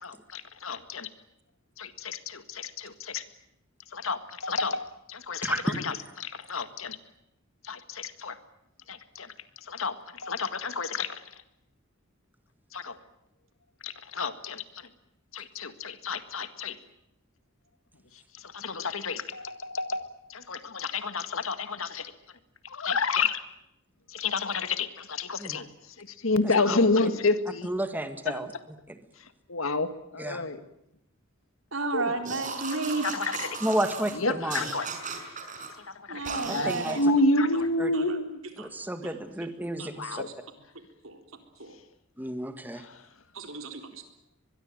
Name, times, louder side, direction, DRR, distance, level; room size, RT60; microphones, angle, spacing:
voice 1, 0.0-1.1 1.8-3.2 3.9-7.0 7.7-8.4 8.9-9.3 9.7-11.2 12.7-13.0 13.8-14.6 15.3-16.8 18.5-20.1 20.3-22.1 22.7-23.4 24.1-25.7 26.0-27.7 28.3-28.4 29.5-30.6 31.9-32.1 33.0-33.5 34.1-34.9 36.1-38.4 40.0-40.3 42.8-42.9, left 3 dB, 85° left, 11 dB, 1.9 m, -29 dB
voice 2, 5.4-5.8 25.4-25.6 26.4-26.8 27.6-28.5 28.9-29.0 30.2-30.4 33.6-34.6 36.5-37.0 37.8-37.9 38.6-40.2 42.2-42.8, right 1 dB, 10° right, 8 dB, 1.8 m, -31 dB
voice 3, 31.7-33.1 36.1-37.3 37.9-38.2 38.6-38.7 39.0-39.2 39.8-40.2 41.0-41.2 41.6-41.8 43.3-44.0, right 3 dB, 80° right, 6 dB, 4.0 m, -33 dB
sound 1, 32.2-34.1 34.5-35.7 36.2-37.0, right 4 dB, 40° right, 5.6 m, -36 dB
24.0 x 22.0 x 9.0 m, 0.80 s
head